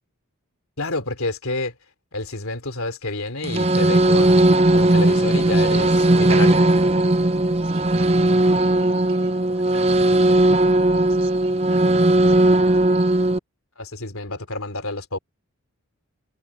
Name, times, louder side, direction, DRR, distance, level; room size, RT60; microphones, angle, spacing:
voice 1, 0.8-1.7 2.1-6.6 13.8-15.2, left 2 dB, 70° left, 3.5 m, -29 dB
sound 1, 3.4-13.4, right 1 dB, 30° right, 0.7 m, -17 dB
voice 2, 7.6-10.0 10.9-12.5, right 4 dB, 85° right, 6.9 m, -46 dB
head